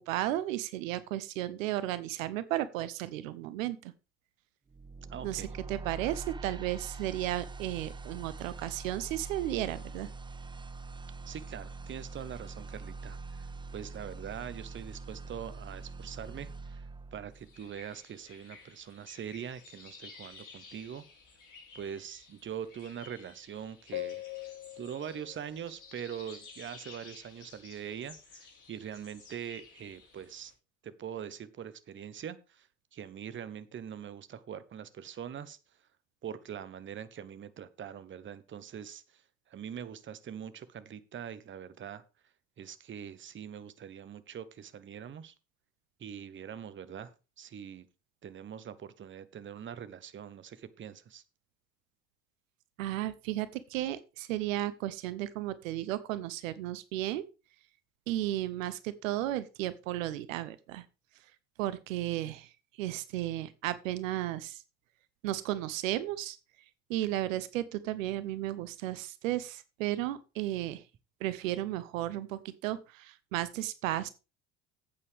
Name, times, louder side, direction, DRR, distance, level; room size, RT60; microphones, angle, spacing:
voice 1, 0.1-3.9 5.2-10.1 52.8-57.2 58.1-60.8 61.6-62.5 62.8-64.6 65.2-66.4 66.9-70.8 71.2-74.1, right 14 dB, 70° right, 16 dB, 0.8 m, -34 dB
sound 1, 4.7-17.8, right 4 dB, 10° right, 0.5 m, -44 dB
voice 2, 5.1-5.5 11.3-13.5 13.7-16.8 17.1-21.0 21.7-24.2 24.8-30.5 30.8-35.6 36.2-39.2 39.5-42.0 42.6-45.3 46.0-47.1 47.4-47.9 48.2-51.2, right 8 dB, 30° right, 15 dB, 0.9 m, -43 dB
sound 2, 17.4-30.5, left 10 dB, 45° left, 5.0 m, -48 dB
11.5 x 8.4 x 3.5 m, 0.31 s
figure-of-eight pair, 65°, 41 cm